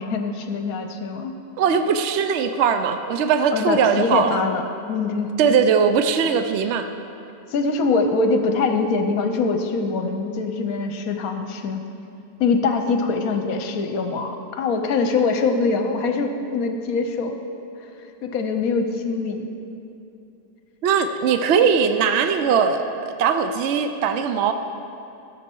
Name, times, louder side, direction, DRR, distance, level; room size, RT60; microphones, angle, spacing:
voice 1, 0.0-1.3 3.5-4.6 4.9-5.3 7.5-11.9 12.4-17.4 18.2-19.5, left 4 dB, 65° left, 6 dB, 1.1 m, -23 dB
voice 2, 1.6-4.4 5.4-6.9 20.8-24.5, right 6 dB, 80° right, 8 dB, 0.6 m, -20 dB
13.5 x 7.3 x 4.5 m, 2.8 s
omnidirectional pair, 1.8 m